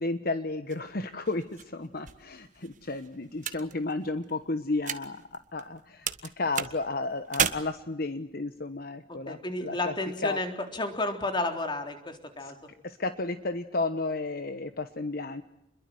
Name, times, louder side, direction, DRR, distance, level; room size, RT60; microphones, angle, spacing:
voice 1, 0.0-9.9 10.2-10.4 12.4-12.5 12.8-15.4, left 3 dB, 50° left, 10 dB, 1.2 m, -33 dB
sound 1, 0.7-5.8 6.1-7.5, right 8 dB, 40° right, 1.5 m, -35 dB
voice 2, 9.1-12.6, left 2 dB, 25° left, 5 dB, 3.8 m, -32 dB
29.0 x 22.5 x 7.8 m, 0.79 s
head